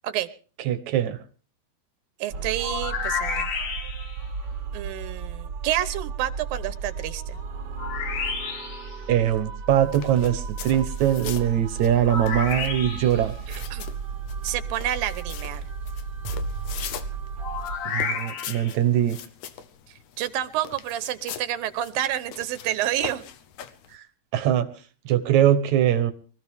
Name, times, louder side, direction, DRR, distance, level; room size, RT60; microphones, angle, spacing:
voice 1, 0.7-1.2 9.1-13.3 17.9-19.2 23.9-24.0 24.3-24.7 25.1-26.1, right 10 dB, 65° right, 12 dB, 2.1 m, -22 dB
voice 2, 2.2-3.5 4.7-7.4 13.5-13.8 14.4-15.7 20.2-23.2, right 12 dB, 85° right, 13 dB, 2.7 m, -29 dB
sound 1, 2.3-17.8, right 5 dB, 45° right, 1.5 m, -34 dB
sound 2, 2.6-4.2 7.8-8.9 12.1-13.3 17.4-18.7, left 5 dB, 85° left, 3.9 m, -31 dB
sound 3, 9.7-24.0, left 9 dB, 70° left, 2.1 m, -42 dB
24.5 x 15.0 x 3.5 m, 0.39 s
omnidirectional pair, 4.0 m